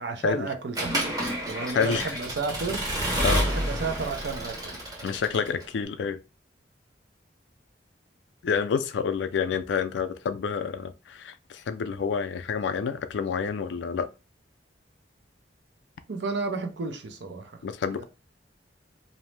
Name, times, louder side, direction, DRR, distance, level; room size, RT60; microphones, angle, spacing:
voice 1, 0.0-2.8 3.3-4.8 16.1-17.6 17.9-18.0, right 3 dB, 70° right, 0.6 m, -32 dB
Accelerating revving vroom / Mechanisms, 0.8-5.7, right 1 dB, 20° right, 0.8 m, -29 dB
voice 2, 1.7-2.1 3.2-3.5 5.0-6.2 8.4-14.1 17.6-18.0, left 6 dB, 80° left, 0.4 m, -28 dB
2.6 x 2.0 x 3.1 m
head